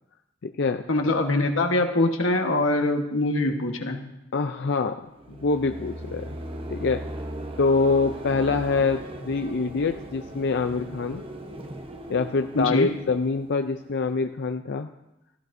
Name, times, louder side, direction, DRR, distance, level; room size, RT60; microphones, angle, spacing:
voice 1, 0.9-4.0 12.5-12.9, left 2 dB, 90° left, 4 dB, 1.3 m, -23 dB
voice 2, 4.3-6.3 6.7-7.0 7.6-11.2 12.1-14.9, left 4 dB, 60° left, 6 dB, 0.5 m, -25 dB
sound 1, 5.1-14.1, right 1 dB, 30° right, 1.0 m, -38 dB
16.0 x 15.0 x 2.7 m, 0.91 s
head